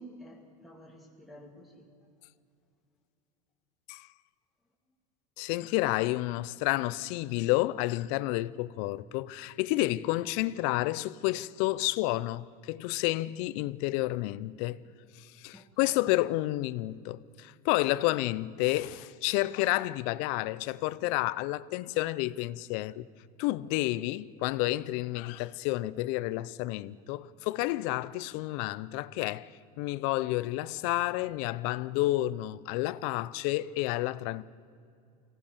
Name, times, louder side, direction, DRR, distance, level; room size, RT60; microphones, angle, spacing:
voice 1, 0.0-1.8 15.5-16.1, equal, ahead, 2.6 m, -50 dB
voice 2, 5.4-14.8 15.2-23.1 23.4-29.5 29.8-34.4, left 18 dB, 65° left, 0.6 m, -30 dB
23.5 x 17.0 x 6.8 m
supercardioid pair, 125°, 19 cm